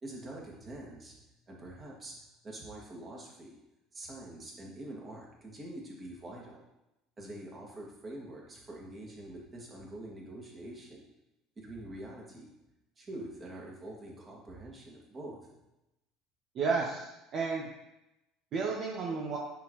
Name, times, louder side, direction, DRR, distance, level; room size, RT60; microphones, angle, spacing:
voice 1, 0.0-1.1 1.5-3.6 3.9-6.6 7.2-11.1 11.6-12.5 13.0-15.5, right 1 dB, 30° right, -3 dB, 2.3 m, -45 dB
voice 2, 16.5-17.7 18.5-19.4, right 4 dB, 50° right, -2 dB, 1.0 m, -32 dB
10.0 x 4.3 x 3.2 m, 0.92 s
figure-of-eight pair, 65°, 0 cm